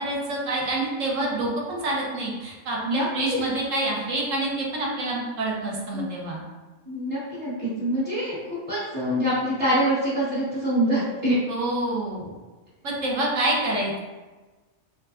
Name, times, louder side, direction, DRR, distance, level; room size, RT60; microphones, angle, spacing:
voice 1, 0.0-6.4 11.5-12.3 12.8-14.0, right 2 dB, 65° right, -3 dB, 1.2 m, -27 dB
voice 2, 2.8-3.4 5.9-6.1 6.9-8.4 8.7-11.4, right 1 dB, 45° right, -12 dB, 1.8 m, -25 dB
5.8 x 2.4 x 2.4 m, 1.2 s
omnidirectional pair, 1.5 m